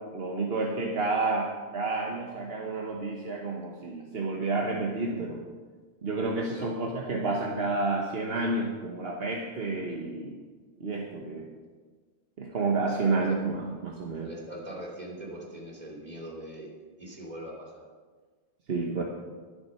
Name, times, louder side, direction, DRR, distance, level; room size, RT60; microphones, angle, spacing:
voice 1, 0.1-5.4 6.0-10.4 10.8-11.5 12.4-14.3 18.7-19.0, right 3 dB, 70° right, 0 dB, 1.4 m, -30 dB
voice 2, 6.4-6.7 12.8-13.5 14.2-16.7 17.0-17.9, right 1 dB, 40° right, -3 dB, 3.0 m, -42 dB
12.0 x 11.5 x 5.7 m, 1.5 s
omnidirectional pair, 1.1 m